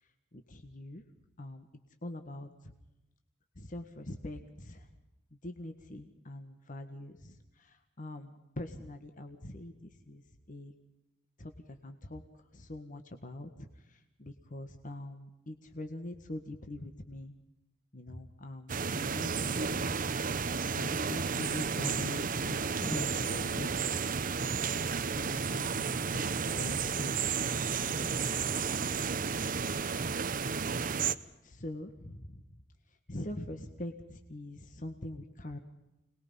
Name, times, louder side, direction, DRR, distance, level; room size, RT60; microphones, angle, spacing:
voice 1, 0.3-1.0 1.4-1.7 2.0-2.7 3.5-4.9 5.4-10.2 10.5-10.7 11.4-12.2 12.5-17.3 17.9-20.0 20.7-23.7 25.0-28.0 31.4-32.4 33.1-35.6, left 1 dB, 45° left, 6 dB, 1.6 m, -43 dB
sound 1, 18.7-31.2, right 5 dB, 45° right, 0.7 m, -32 dB
27.0 x 20.5 x 5.6 m, 0.91 s
head